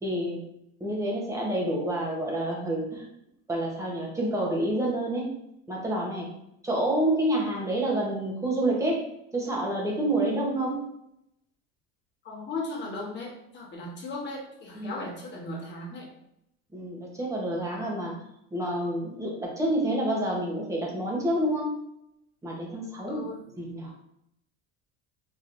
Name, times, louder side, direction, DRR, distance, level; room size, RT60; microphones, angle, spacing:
voice 1, 0.0-0.4 0.8-3.1 3.5-5.3 5.7-6.3 6.6-9.1 9.3-10.9 14.7-15.0 16.7-18.1 18.5-21.7 22.4-23.3 23.6-23.9, right 1 dB, 10° right, -3 dB, 0.9 m, -28 dB
voice 2, 12.2-16.1 23.1-23.6, left 2 dB, 35° left, -2 dB, 1.2 m, -37 dB
4.6 x 3.0 x 2.6 m, 0.79 s
cardioid pair, 140°, 33 cm